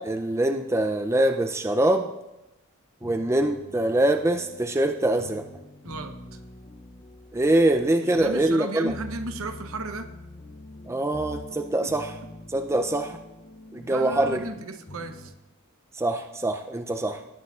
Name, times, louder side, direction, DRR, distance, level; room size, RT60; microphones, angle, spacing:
voice 1, 0.0-2.1 3.0-5.4 7.3-8.9 10.9-12.1 12.5-13.2 13.7-14.4 15.9-17.2, right 1 dB, 10° right, 6 dB, 0.4 m, -24 dB
sound 1, 3.0-15.3, left 2 dB, 30° left, 0.6 m, -44 dB
voice 2, 5.8-6.4 8.0-10.2 13.9-15.3, right 3 dB, 65° right, 8 dB, 0.8 m, -34 dB
18.5 x 8.9 x 2.4 m, 0.94 s
head